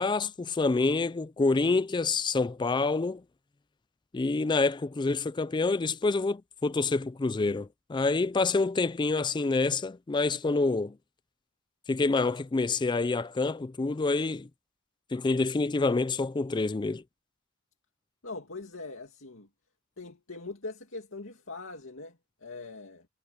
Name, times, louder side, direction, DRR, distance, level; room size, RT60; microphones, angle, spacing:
voice 1, 0.0-3.2 4.1-11.0 11.9-14.5 15.1-17.0, left 3 dB, 20° left, 0.4 m, -27 dB
voice 2, 18.2-19.5 20.0-23.1, left 3 dB, 80° left, 2.4 m, -42 dB
head